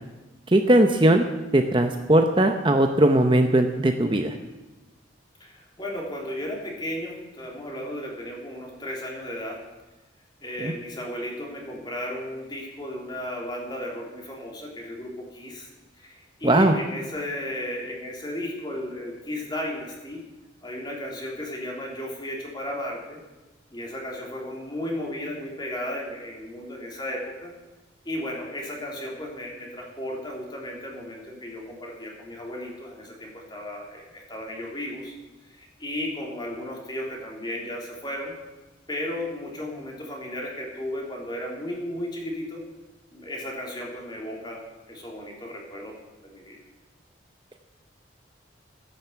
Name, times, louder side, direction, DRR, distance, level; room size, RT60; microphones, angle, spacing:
voice 1, 0.5-1.2 1.5-4.3 10.6-10.7 16.4-16.8, right 1 dB, 25° right, 5 dB, 0.8 m, -19 dB
voice 2, 5.4-9.6 10.4-15.7 16.0-20.2 20.6-23.2 23.7-27.5 28.0-35.1 35.5-38.3 38.9-42.6 43.1-44.6 44.9-45.9 46.2-46.6, left 1 dB, 25° left, -1 dB, 3.4 m, -34 dB
14.5 x 10.5 x 8.1 m, 1.1 s
head